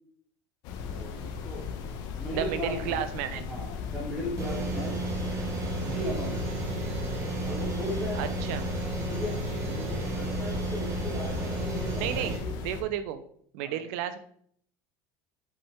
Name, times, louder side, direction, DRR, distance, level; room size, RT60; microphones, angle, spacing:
sound 1, 0.6-12.8, left 6 dB, 55° left, 1.1 m, -37 dB
voice 1, 0.9-1.7 2.2-3.1 3.5-5.0 5.8-6.4 7.4-8.2 9.1-12.5 13.6-13.8, left 1 dB, 10° right, -5 dB, 2.2 m, -37 dB
voice 2, 2.3-3.5 8.2-8.7 12.0-12.3 12.6-13.2 13.5-14.2, right 10 dB, 75° right, 11 dB, 0.9 m, -32 dB
sound 2, 4.4-12.4, right 3 dB, 40° right, 1.6 m, -33 dB
8.0 x 5.5 x 3.7 m, 0.62 s
cardioid pair, 155°, 8 cm